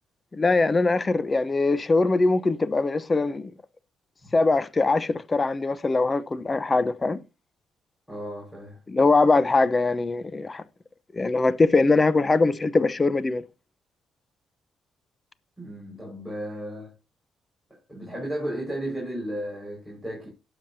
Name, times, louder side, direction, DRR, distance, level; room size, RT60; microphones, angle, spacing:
voice 1, 0.3-3.5 4.3-7.2 8.9-10.6 11.1-13.4, left 3 dB, 25° left, 0.8 m, -22 dB
voice 2, 8.1-8.8 15.6-16.9 17.7-20.3, right 1 dB, 5° left, 4.9 m, -34 dB
18.0 x 7.2 x 2.7 m
cardioid pair, 90°, 0 cm